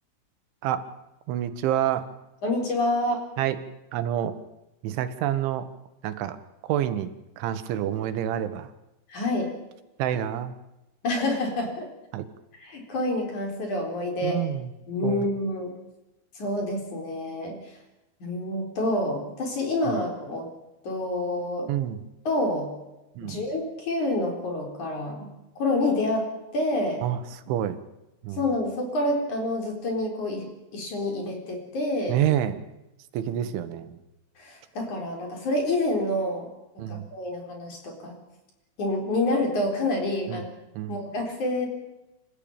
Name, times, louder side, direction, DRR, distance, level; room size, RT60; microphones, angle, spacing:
voice 1, 1.3-2.1 3.4-3.6 3.9-4.4 4.8-5.7 6.0-6.4 6.7-8.7 10.0-10.6 12.1-12.3 14.2-14.7 15.0-15.3 19.9-20.0 21.7-22.0 23.2-23.4 27.0-27.8 28.2-28.4 32.1-32.6 33.1-34.0 36.8-37.1 40.3-40.4 40.8-41.0, right 11 dB, 80° right, 11 dB, 3.7 m, -28 dB
voice 2, 2.4-3.2 9.1-9.5 11.0-11.9 12.6-14.4 14.9-15.7 16.4-17.6 18.2-20.5 20.8-21.7 22.3-22.7 23.2-25.3 25.6-27.0 28.3-32.2 34.4-36.5 36.9-38.2 38.8-40.5 40.9-41.7, left 1 dB, 40° left, 2 dB, 5.2 m, -28 dB
27.5 x 14.5 x 8.9 m, 0.96 s
omnidirectional pair, 5.4 m